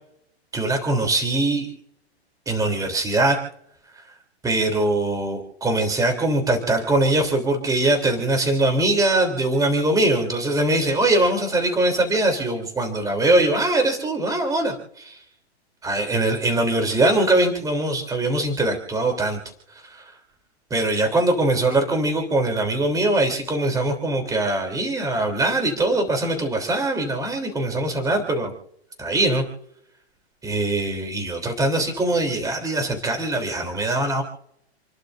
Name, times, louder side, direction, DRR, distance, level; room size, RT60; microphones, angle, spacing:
voice 1, 0.5-1.7 2.4-3.4 4.0-4.1 4.4-15.2 15.8-19.4 19.8-20.0 20.7-28.5 29.0-29.4 30.4-34.2, right 2 dB, 10° right, 4 dB, 3.4 m, -22 dB
30.0 x 11.5 x 2.6 m, 0.76 s
hypercardioid pair, 130°, 33 cm